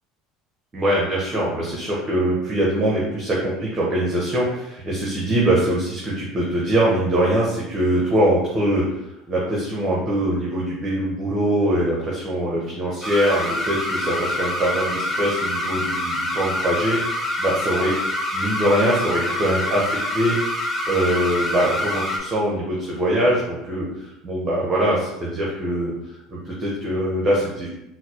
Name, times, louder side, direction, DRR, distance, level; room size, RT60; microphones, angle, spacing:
voice 1, 0.7-9.0 9.3-18.0 18.3-20.4 20.9-25.9 26.3-27.7, right 1 dB, 35° right, -4 dB, 0.8 m, -22 dB
sound 1, 13.0-22.2, left 1 dB, 10° left, 0.7 m, -26 dB
4.0 x 2.0 x 2.8 m, 0.88 s
hypercardioid pair, 75°, 0 cm